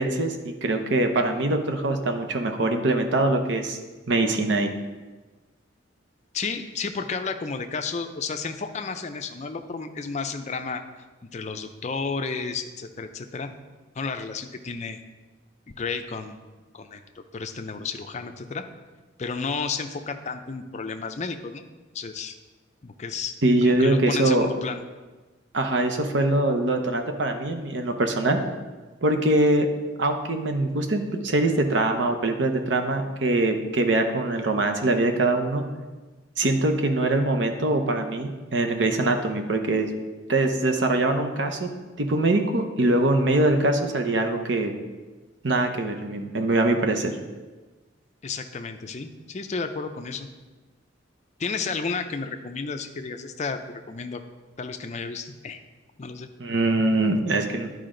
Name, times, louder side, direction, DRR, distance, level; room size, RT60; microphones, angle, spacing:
voice 1, 0.0-3.8 4.1-4.7 23.4-24.5 25.5-28.4 29.0-29.7 30.0-35.6 36.4-39.9 40.3-41.7 42.0-44.7 45.4-47.2 56.4-57.7, right 2 dB, 65° right, 5 dB, 0.8 m, -23 dB
voice 2, 6.3-10.8 11.3-13.5 14.0-15.0 15.7-16.4 16.7-17.0 17.3-18.7 19.2-21.6 21.9-22.3 22.8-23.3 23.6-24.8 48.2-50.3 51.4-53.6 53.9-54.2 54.6-55.6 56.0-56.3, left 4 dB, 35° left, 7 dB, 0.5 m, -32 dB
11.0 x 4.9 x 3.8 m, 1.3 s
head